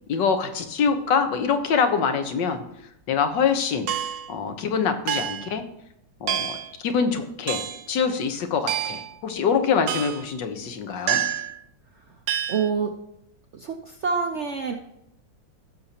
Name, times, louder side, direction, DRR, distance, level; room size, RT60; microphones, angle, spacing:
voice 1, 0.1-2.6 3.1-3.9 4.3-5.6 6.2-6.6 6.8-7.6 7.9-11.3, left 6 dB, 75° left, 7 dB, 1.6 m, -24 dB
sound 1, 3.9-4.3 5.1-5.5 6.3-6.7 7.5-7.8 8.7-9.1 9.9-10.3 11.1-11.6 12.3-12.7, right 10 dB, 80° right, 1.3 m, -28 dB
voice 2, 12.5-12.9 13.5-14.8, right 5 dB, 65° right, 4 dB, 0.7 m, -26 dB
16.5 x 6.6 x 2.9 m, 0.82 s
omnidirectional pair, 1.9 m